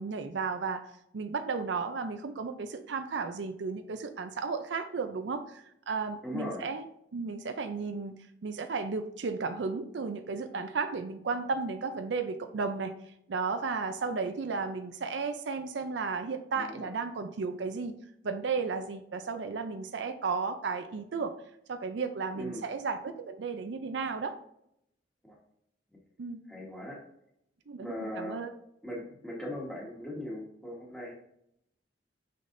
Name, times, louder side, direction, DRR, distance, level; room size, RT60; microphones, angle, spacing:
voice 1, 0.0-6.8 7.1-12.9 13.3-17.9 18.2-21.3 21.7-24.3 26.2-26.4 27.7-28.5, right 4 dB, 80° right, 8 dB, 0.5 m, -34 dB
voice 2, 6.2-6.7 16.5-16.9 22.3-22.6 25.2-25.4 26.5-27.0 27.8-28.4 28.8-31.2, left 1 dB, 5° left, -4 dB, 1.3 m, -39 dB
6.3 x 5.7 x 2.6 m, 0.74 s
head